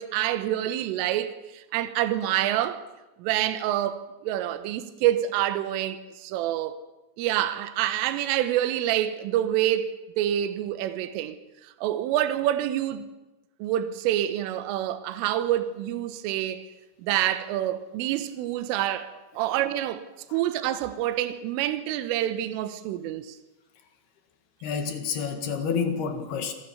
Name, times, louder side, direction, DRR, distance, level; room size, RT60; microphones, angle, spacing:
voice 1, 0.0-2.8 3.2-6.8 7.2-9.9 10.2-11.4 11.8-13.0 13.6-16.7 17.0-20.1 20.3-23.4, right 12 dB, 80° right, 3.6 m, -27 dB
voice 2, 24.6-26.5, left 6 dB, 60° left, 3.4 m, -29 dB
27.0 x 18.0 x 7.1 m
omnidirectional pair, 5.8 m